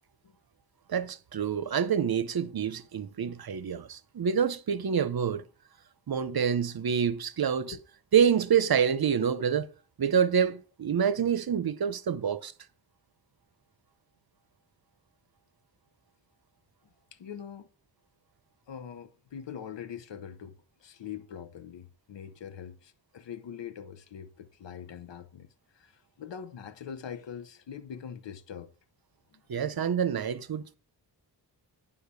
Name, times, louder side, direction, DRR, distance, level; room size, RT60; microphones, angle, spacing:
voice 1, 0.9-5.4 6.1-7.7 8.1-9.7 10.0-12.5 29.5-30.8, right 7 dB, 60° right, 0.8 m, -27 dB
voice 2, 17.1-17.7 18.7-25.5 25.7-28.7 29.3-29.4, left 8 dB, 90° left, 0.9 m, -43 dB
10.0 x 5.6 x 6.9 m
wide cardioid pair, 95°, 42 cm